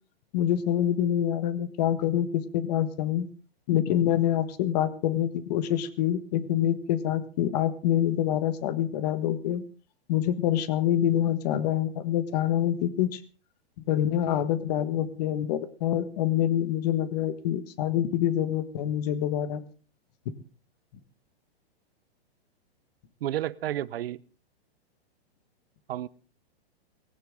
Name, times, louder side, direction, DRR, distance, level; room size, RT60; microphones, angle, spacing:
voice 1, 0.3-3.3 3.7-9.6 10.1-13.2 13.9-19.6, left 11 dB, 40° left, 14 dB, 1.5 m, -26 dB
voice 2, 23.2-24.2 25.9-26.1, right 12 dB, 65° right, 20 dB, 0.8 m, -31 dB
19.0 x 17.0 x 3.7 m, 0.36 s
hypercardioid pair, 160°, 32 cm